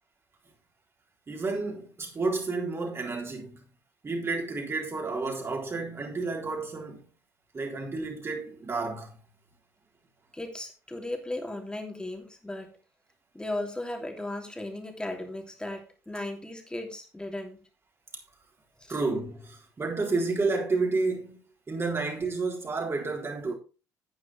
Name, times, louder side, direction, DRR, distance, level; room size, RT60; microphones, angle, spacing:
voice 1, 1.3-3.6 4.0-7.0 7.5-9.2 18.9-21.4 21.7-23.5, right 3 dB, 30° right, 3.8 m, -30 dB
voice 2, 10.3-12.7 13.3-17.6 18.8-19.0, left 1 dB, 10° left, 2.9 m, -36 dB
10.5 x 9.4 x 3.3 m
figure-of-eight pair, 55°, 9 cm